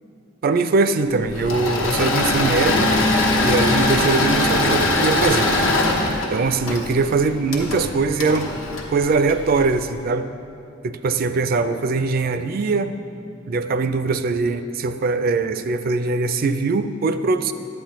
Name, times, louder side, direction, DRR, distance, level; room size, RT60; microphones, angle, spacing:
voice 1, 0.4-2.9 3.4-5.6 6.3-8.5 8.9-10.3 10.8-13.0 13.5-17.5, right 3 dB, 50° right, 11 dB, 0.3 m, -21 dB
Engine / Mechanisms, 1.3-9.7, left 2 dB, 85° left, 1.0 m, -21 dB
10.0 x 8.6 x 3.1 m, 2.6 s
head